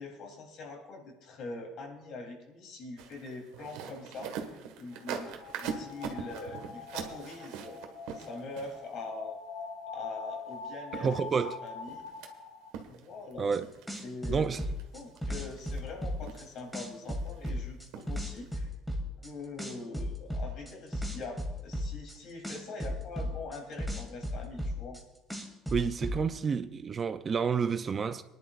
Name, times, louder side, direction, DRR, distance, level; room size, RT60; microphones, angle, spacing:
voice 1, 0.0-4.3 4.8-7.8 8.1-9.4 9.9-11.1 11.6-12.1 12.9-13.5 14.0-14.6 14.9-18.7 19.2-25.0, left 3 dB, 55° left, 3.2 m, -43 dB
Walking on dusty Floor, 3.0-9.0 10.5-10.6 10.9-12.3 12.7-13.3 13.6-14.0 14.5-14.8 15.2-15.8 16.2-16.7 17.0-17.5 17.9-18.1 18.5-18.6, right 7 dB, 80° right, 1.5 m, -42 dB
sound 1, 4.9-12.7, left 4 dB, 85° left, 2.7 m, -44 dB
voice 2, 10.9-11.6 13.4-13.7 14.3-14.6 25.7-28.2, right 6 dB, 25° right, 0.4 m, -29 dB
sound 2, 13.5-13.6 13.9-16.4 16.7-19.3 19.6-22.1 22.4-25.0 25.3-26.2, equal, 5° left, 1.8 m, -34 dB
22.5 x 11.0 x 2.5 m
cardioid pair, 145°, 0 cm